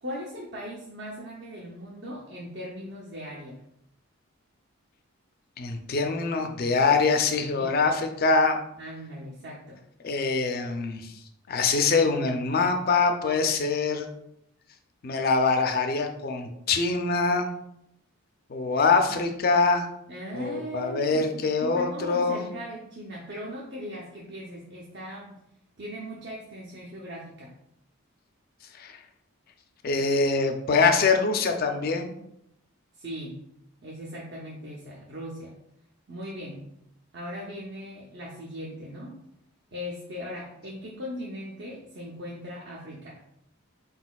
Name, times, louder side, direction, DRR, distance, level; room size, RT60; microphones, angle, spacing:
voice 1, 0.0-3.6 7.6-7.8 8.8-9.8 20.1-25.3 25.8-27.5 33.0-33.4 33.8-35.6 36.1-36.6 37.1-39.2 39.7-43.2, equal, 50° right, -3 dB, 0.6 m, -39 dB
voice 2, 5.6-8.6 10.0-11.2 11.5-14.1 15.0-17.5 18.5-19.9 20.3-22.4 28.8-29.0 29.8-32.1, left 4 dB, 45° left, 5 dB, 0.5 m, -24 dB
4.3 x 4.0 x 2.3 m, 0.78 s
head